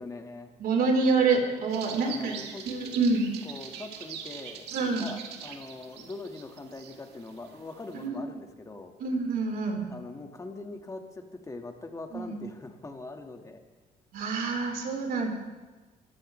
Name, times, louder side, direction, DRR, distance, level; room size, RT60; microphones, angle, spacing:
voice 1, 0.0-0.5 2.0-2.7 3.4-4.7 5.0-8.9 9.9-13.6, left 3 dB, 20° left, 4 dB, 1.7 m, -42 dB
voice 2, 0.6-2.4 2.6-3.3 4.7-5.1 8.0-8.2 9.0-9.9 12.1-12.4 14.1-15.3, right 4 dB, 60° right, 1 dB, 4.3 m, -27 dB
sound 1, 1.7-8.1, right 7 dB, 85° right, 1.8 m, -43 dB
23.0 x 14.5 x 3.3 m, 1.3 s
cardioid pair, 110°, 17 cm